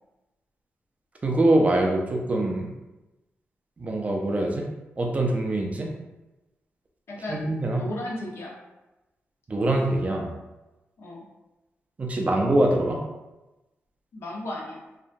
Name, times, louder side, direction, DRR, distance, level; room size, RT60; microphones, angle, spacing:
voice 1, 1.2-2.7 3.8-4.7 5.0-5.9 7.3-7.8 9.5-10.3 12.0-13.0, right 1 dB, 30° right, 1 dB, 0.4 m, -23 dB
voice 2, 7.1-7.4 7.7-8.6 11.0-11.3 14.1-14.8, left 1 dB, 65° left, -2 dB, 0.6 m, -34 dB
2.7 x 2.1 x 2.5 m, 1.0 s
wide cardioid pair, 145°, 5 cm